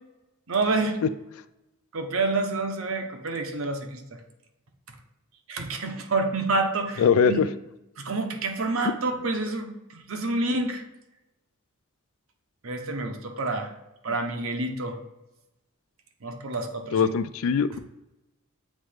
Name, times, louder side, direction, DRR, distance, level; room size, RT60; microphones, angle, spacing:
voice 1, 0.5-1.0 1.9-4.0 5.5-7.4 8.0-10.8 12.6-13.7 14.0-15.0 16.2-17.1, right 3 dB, 70° right, 5 dB, 0.9 m, -28 dB
voice 2, 7.0-7.5 16.9-17.8, left 6 dB, 75° left, 14 dB, 0.3 m, -21 dB
7.5 x 3.1 x 5.0 m, 0.94 s
head